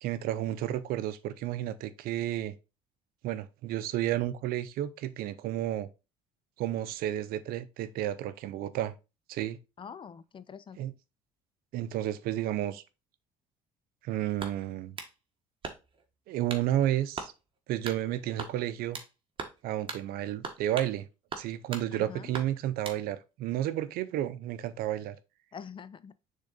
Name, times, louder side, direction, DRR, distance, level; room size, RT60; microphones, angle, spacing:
voice 1, 0.0-2.5 3.2-5.9 6.6-8.9 9.3-9.6 10.8-10.9 11.7-12.8 14.0-15.0 16.3-17.3 17.7-19.0 19.6-21.1 21.4-25.2, right 12 dB, 75° right, 0.7 m, -32 dB
voice 2, 9.8-10.8 21.9-22.4 25.5-26.1, left 7 dB, 30° left, 0.5 m, -45 dB
sound 1, 14.4-15.1 15.6-16.0 16.5-16.7 17.2-17.3 17.8-18.0 18.4-19.1 19.4-19.6 19.9-20.0 20.4-21.0 21.3-21.9 22.3-23.0, right 4 dB, 35° right, 1.5 m, -40 dB
6.5 x 3.7 x 4.0 m
supercardioid pair, 90°, 16 cm